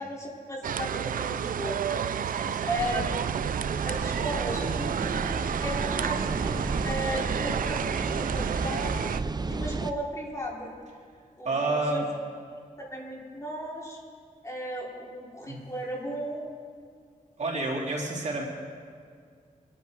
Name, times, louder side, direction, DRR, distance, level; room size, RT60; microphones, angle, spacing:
voice 1, 0.0-2.0 2.7-3.0 3.8-6.6 6.8-9.1 9.5-10.7 11.4-12.0 12.8-14.0 14.4-16.5, equal, 20° left, -4 dB, 4.4 m, -35 dB
sound 1, 0.6-9.2, right 8 dB, 80° right, 0.5 m, -31 dB
voice 2, 2.3-2.7 11.4-12.0 15.5-15.6 17.4-18.4, right 2 dB, 55° right, -2 dB, 2.8 m, -29 dB
sound 2, 2.8-9.9, right 3 dB, 30° right, 0.6 m, -33 dB
25.0 x 11.5 x 4.8 m, 2.2 s
wide cardioid pair, 110°, 14 cm